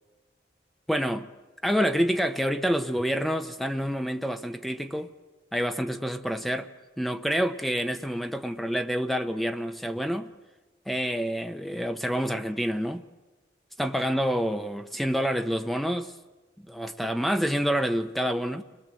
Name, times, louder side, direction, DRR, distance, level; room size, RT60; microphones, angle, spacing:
voice 1, 0.9-1.3 1.6-5.1 5.5-6.7 7.0-10.3 10.9-13.0 13.8-16.1 16.7-18.6, equal, ahead, 0.8 m, -27 dB
30.0 x 21.5 x 7.6 m
head